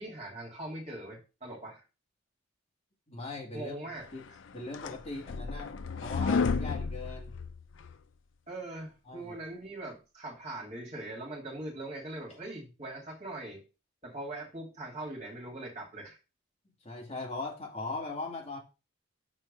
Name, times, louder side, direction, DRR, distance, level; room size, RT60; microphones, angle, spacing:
voice 1, 0.0-1.8 3.5-4.0 8.5-13.6 14.0-16.2, right 2 dB, 30° right, -2 dB, 2.6 m, -41 dB
voice 2, 3.1-3.7 4.1-4.2 4.5-5.7 6.0-7.3 9.1-9.3 16.8-18.6, left 3 dB, 30° left, -3 dB, 2.4 m, -39 dB
sound 1, 4.3-7.9, left 5 dB, 65° left, 0.4 m, -32 dB
6.3 x 4.4 x 5.4 m, 0.30 s
head